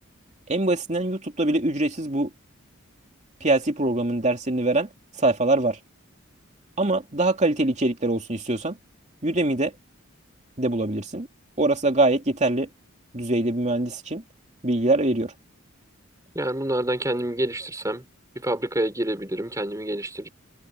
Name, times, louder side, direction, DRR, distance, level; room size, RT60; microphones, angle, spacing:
voice 1, 0.5-2.3 3.4-4.9 5.2-5.8 6.8-8.8 9.2-9.7 10.6-11.3 11.6-12.7 13.1-14.2 14.6-15.3, right 2 dB, 35° right, 2.8 m, -23 dB
voice 2, 16.3-18.1 18.4-20.3, right 1 dB, 15° right, 5.7 m, -27 dB
head